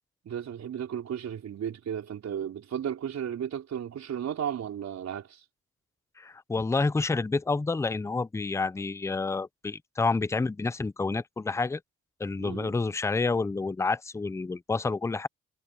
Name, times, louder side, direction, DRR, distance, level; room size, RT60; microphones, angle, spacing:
voice 1, 0.2-5.4 12.4-12.7, right 9 dB, 60° right, 4.4 m, -34 dB
voice 2, 6.2-11.8 12.2-15.3, left 3 dB, 10° left, 0.5 m, -29 dB
cardioid pair, 90°, 30 cm